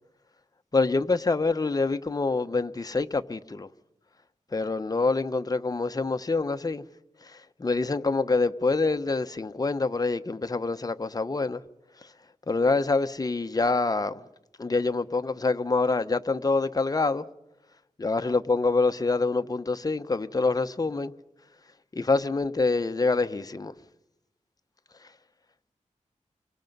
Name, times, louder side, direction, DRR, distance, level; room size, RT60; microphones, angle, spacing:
voice 1, 0.7-3.7 4.5-6.8 7.2-11.6 12.0-12.1 12.5-14.2 14.6-17.2 18.0-21.1 21.9-23.7, left 3 dB, 30° left, 0.7 m, -26 dB
28.0 x 24.0 x 5.3 m
wide cardioid pair, 110°, 13 cm